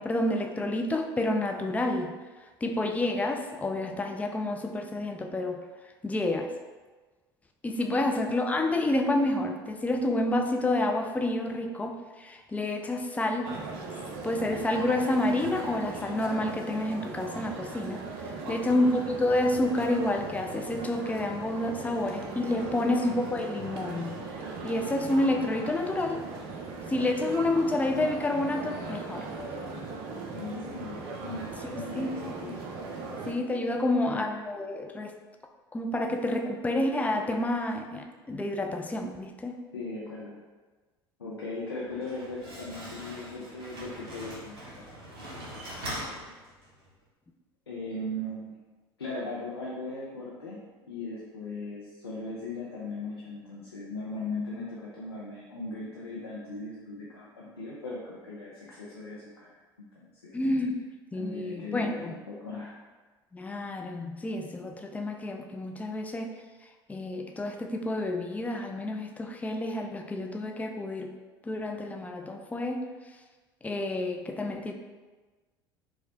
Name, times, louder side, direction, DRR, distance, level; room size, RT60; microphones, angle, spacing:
voice 1, 0.0-2.1 2.6-5.6 6.0-6.5 7.6-13.6 14.2-18.0 18.5-24.2 24.6-26.3 26.9-29.3 31.7-32.1 33.3-35.1 35.7-39.6 60.3-60.8 61.1-62.1 63.3-66.3 66.9-71.1 71.4-72.9 73.6-74.7, left 1 dB, 10° left, 4 dB, 0.3 m, -29 dB
voice 2, 7.9-8.2 18.5-18.9 22.7-23.0 30.3-32.6 33.8-34.4 39.7-40.4 41.2-44.6 44.9-46.3 47.7-48.6 49.0-59.6 60.0-60.4 61.1-62.8, left 2 dB, 80° left, -6 dB, 0.5 m, -39 dB
sound 1, 13.4-33.3, right 3 dB, 50° right, 0.5 m, -39 dB
Slam, 41.8-46.9, equal, 70° right, 0.9 m, -42 dB
4.5 x 2.1 x 2.7 m, 1.3 s
figure-of-eight pair, 65°, 13 cm